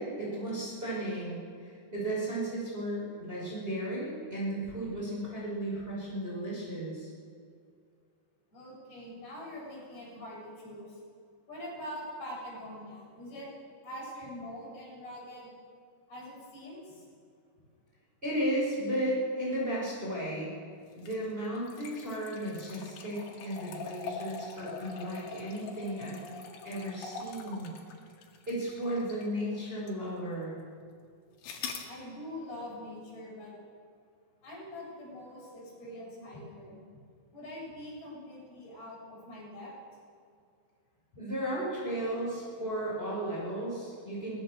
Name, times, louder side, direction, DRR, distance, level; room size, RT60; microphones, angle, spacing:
voice 1, 0.0-7.1 18.2-20.5 21.0-26.3 26.6-27.7 28.5-30.6 41.2-44.4, right 1 dB, 10° right, -5 dB, 5.6 m, -34 dB
voice 2, 8.5-11.0 11.5-13.5 13.8-15.5 16.1-17.1 31.9-33.5 34.4-36.8 37.3-39.7, left 1 dB, 60° left, -4 dB, 9.2 m, -44 dB
sound 1, 20.9-29.4 29.9-30.0 31.4-31.9, left 5 dB, 90° left, 4.4 m, -43 dB
22.0 x 20.0 x 6.8 m, 2.2 s
omnidirectional pair, 5.1 m